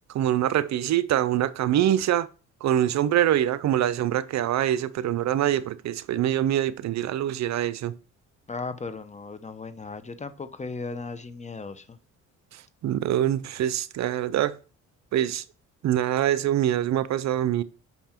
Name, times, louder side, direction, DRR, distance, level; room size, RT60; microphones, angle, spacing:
voice 1, 0.1-2.3 2.6-7.9 12.5-14.6 15.1-15.4 15.8-17.6, right 11 dB, 65° right, 0.6 m, -24 dB
voice 2, 8.5-12.0, left 4 dB, 25° left, 0.7 m, -36 dB
5.7 x 5.6 x 4.4 m
cardioid pair, 90°, 30 cm